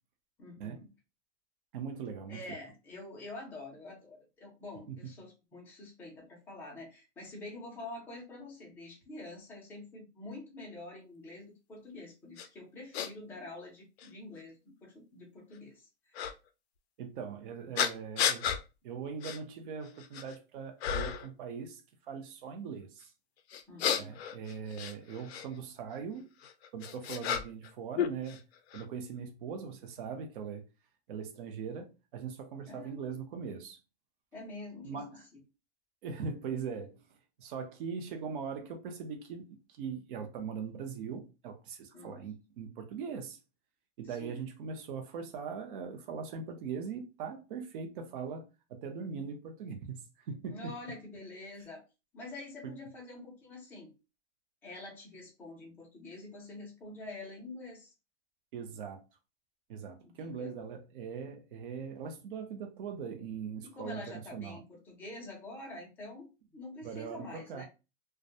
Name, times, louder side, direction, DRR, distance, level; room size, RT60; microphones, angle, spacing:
voice 1, 0.4-0.9 2.3-16.3 23.7-24.1 32.7-33.0 34.3-35.0 41.9-42.3 44.0-44.5 50.5-51.8 52.1-53.9 54.6-57.9 60.0-60.6 63.6-67.6, left 2 dB, 5° left, 0.5 m, -47 dB
voice 2, 1.7-2.4 4.9-5.0 17.0-18.5 18.8-21.8 22.1-23.1 24.0-26.3 26.7-28.4 28.7-30.6 31.1-33.8 34.8-35.2 36.0-37.0 37.4-43.4 44.0-50.7 52.6-52.8 58.5-59.0 59.7-64.6 66.8-67.6, right 6 dB, 50° right, 0.6 m, -41 dB
sound 1, 12.4-12.5 12.9-13.1 14.0-14.1 16.1-16.3 17.8-18.6 19.2-19.4 19.8-20.4 20.8-21.3 23.5-25.5 26.4-27.7 28.0-28.8, left 8 dB, 65° left, 0.5 m, -33 dB
2.2 x 2.1 x 2.6 m
hypercardioid pair, 145°, 34 cm